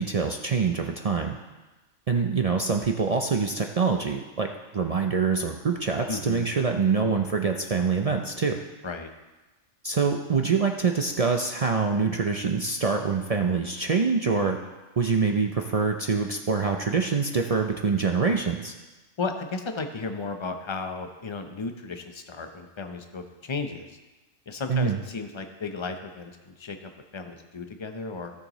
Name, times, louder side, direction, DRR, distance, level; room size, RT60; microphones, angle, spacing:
voice 1, 0.0-1.4 2.1-4.5 4.7-8.6 9.8-14.6 15.0-18.7 24.7-25.0, right 5 dB, 45° right, 3 dB, 0.4 m, -25 dB
voice 2, 6.1-6.5 8.8-9.1 19.2-23.9 24.5-28.3, left 4 dB, 30° left, 6 dB, 0.6 m, -34 dB
16.5 x 6.5 x 3.1 m, 1.2 s
omnidirectional pair, 1.3 m